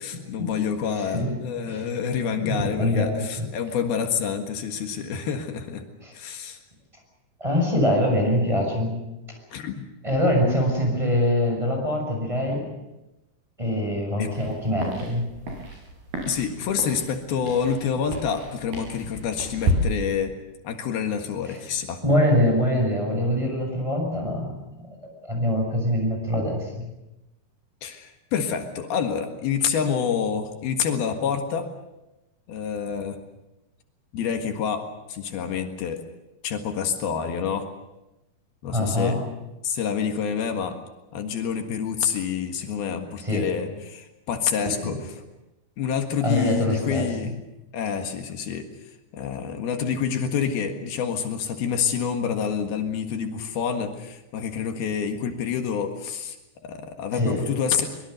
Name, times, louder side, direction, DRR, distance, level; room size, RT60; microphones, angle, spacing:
voice 1, 0.0-5.9 6.1-6.6 9.5-9.9 14.2-14.3 16.3-20.3 20.6-22.0 27.8-31.7 32.5-33.2 34.1-36.0 36.4-37.7 38.6-39.2 39.6-40.8 41.1-45.2 45.8-47.3 47.7-48.7 49.1-56.4 56.6-57.9, left 7 dB, 80° left, 4 dB, 3.6 m, -27 dB
voice 2, 0.9-1.3 1.6-1.9 2.4-3.4 6.0-6.1 7.4-9.0 10.0-12.7 13.6-15.3 21.5-21.6 22.0-24.6 25.0-26.8 38.7-39.2 43.2-43.5 44.6-44.9 46.2-47.1 57.1-57.5, left 1 dB, 10° right, 1 dB, 6.3 m, -24 dB
sound 1, 14.2-19.7, right 1 dB, 85° right, 7.9 m, -32 dB
24.0 x 22.5 x 6.6 m, 0.98 s
omnidirectional pair, 4.3 m